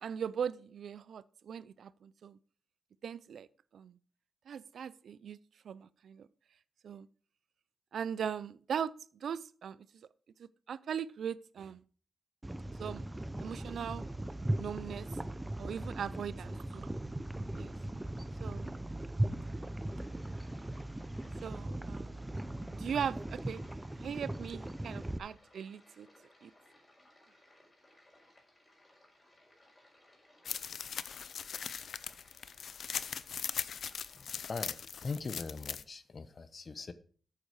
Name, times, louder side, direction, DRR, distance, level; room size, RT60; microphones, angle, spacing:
voice 1, 0.0-2.4 3.0-3.5 3.7-4.0 4.5-5.4 5.6-6.3 6.8-7.1 7.9-9.9 10.4-11.8 12.8-13.1 13.4-14.0 14.6-15.1 15.6-16.9 17.5-17.7 18.4-18.7 21.4-22.2 22.7-23.6 24.0-26.1 26.4-26.5, right 8 dB, 75° right, 0.5 m, -39 dB
sound 1, 12.4-25.2, right 1 dB, 10° right, 0.5 m, -38 dB
sound 2, 19.1-34.6, left 1 dB, 20° left, 5.0 m, -64 dB
sound 3, 30.5-35.8, left 7 dB, 70° left, 0.5 m, -40 dB
voice 2, 34.1-36.9, left 4 dB, 40° left, 0.9 m, -41 dB
8.7 x 8.1 x 4.8 m
wide cardioid pair, 115°, 0 cm